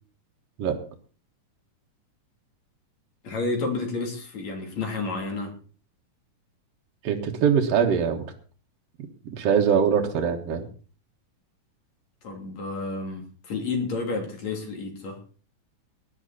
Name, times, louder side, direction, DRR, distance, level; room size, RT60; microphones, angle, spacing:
voice 1, 3.2-5.5 12.2-15.2, left 3 dB, 60° left, 3 dB, 4.3 m, -30 dB
voice 2, 7.0-8.3 9.3-10.6, right 7 dB, 55° right, 1 dB, 2.3 m, -22 dB
19.0 x 11.0 x 4.2 m, 0.38 s
omnidirectional pair, 3.6 m